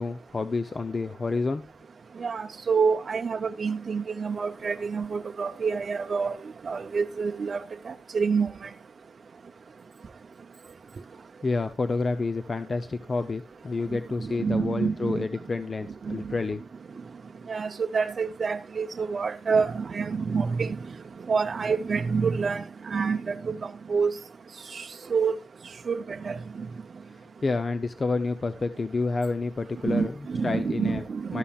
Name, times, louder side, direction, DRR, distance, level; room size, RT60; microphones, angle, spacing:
voice 1, 0.0-1.7 11.4-16.6 27.1-31.4, left 3 dB, 35° left, 0.6 m, -29 dB
voice 2, 2.2-6.4 6.6-8.7 14.2-15.3 16.0-16.3 17.5-20.8 21.3-24.1 24.7-25.4 25.9-26.7 29.8-31.4, right 5 dB, 50° right, 0.6 m, -28 dB
13.0 x 13.0 x 2.4 m
wide cardioid pair, 140°, 0 cm